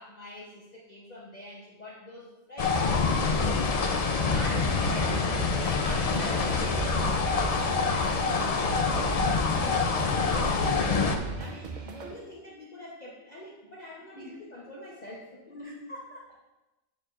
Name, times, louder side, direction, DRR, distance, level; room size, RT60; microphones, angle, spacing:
voice 1, 0.0-7.1 7.9-15.4, left 1 dB, 40° left, -5 dB, 0.8 m, -44 dB
sound 1, 2.6-11.2, left 4 dB, 70° left, 0.3 m, -26 dB
sound 2, 4.8-12.1, right 5 dB, 50° right, 0.6 m, -38 dB
voice 2, 7.7-8.3 14.1-14.3 15.5-16.4, equal, 25° right, -7 dB, 2.5 m, -44 dB
7.4 x 6.6 x 2.4 m, 1.0 s
omnidirectional pair, 1.3 m